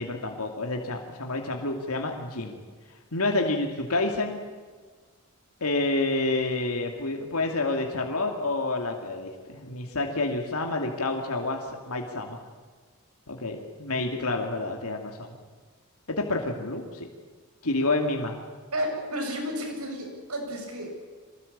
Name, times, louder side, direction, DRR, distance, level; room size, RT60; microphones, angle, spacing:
voice 1, 0.0-2.6 3.1-4.4 5.6-12.4 13.3-15.4 16.1-17.1 17.6-18.4, left 2 dB, 85° left, 2 dB, 2.6 m, -29 dB
voice 2, 18.7-20.9, equal, 85° right, 2 dB, 7.6 m, -32 dB
25.0 x 19.0 x 8.7 m, 1.5 s
head